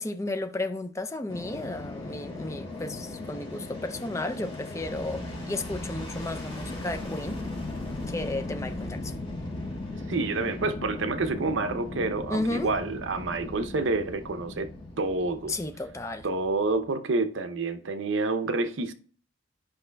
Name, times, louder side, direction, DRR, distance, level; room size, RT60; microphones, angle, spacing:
voice 1, 0.0-7.4 8.1-9.1 12.3-12.7 15.5-16.3, left 2 dB, 15° left, 0.4 m, -33 dB
Fixed-wing aircraft airplane, 1.3-16.5, left 2 dB, 30° left, 3.4 m, -38 dB
sound 1, 4.8-16.9, right 1 dB, 30° right, 3.7 m, -44 dB
voice 2, 10.1-14.7 15.0-15.5 16.2-18.9, right 3 dB, 80° right, 0.6 m, -28 dB
10.5 x 5.4 x 2.2 m
head